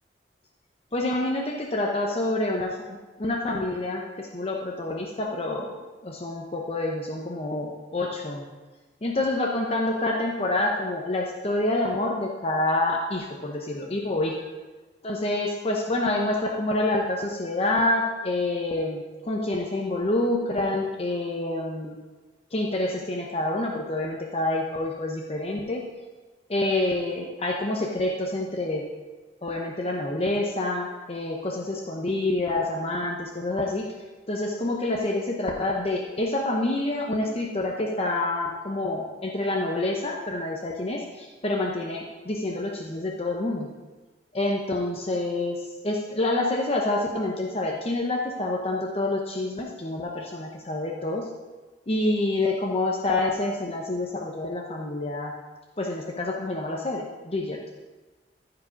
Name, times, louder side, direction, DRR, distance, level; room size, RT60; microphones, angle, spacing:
voice 1, 0.9-5.7 6.0-8.5 9.0-14.3 15.0-22.0 22.5-25.8 26.5-28.8 29.4-33.9 34.3-43.7 44.3-51.3 51.9-55.3 55.8-57.6, left 2 dB, 35° left, 0 dB, 0.9 m, -27 dB
14.5 x 4.9 x 5.2 m, 1.2 s
head